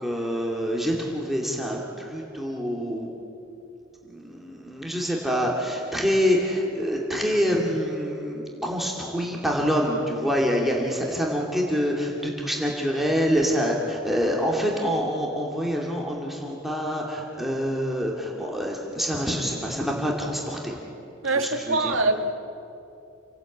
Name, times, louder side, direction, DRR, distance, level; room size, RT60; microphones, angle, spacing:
voice 1, 0.0-3.1 4.1-20.8 21.3-22.0, equal, ahead, 2.5 m, -26 dB
voice 2, 21.2-22.3, right 2 dB, 80° right, 1.9 m, -24 dB
29.0 x 18.0 x 8.7 m
head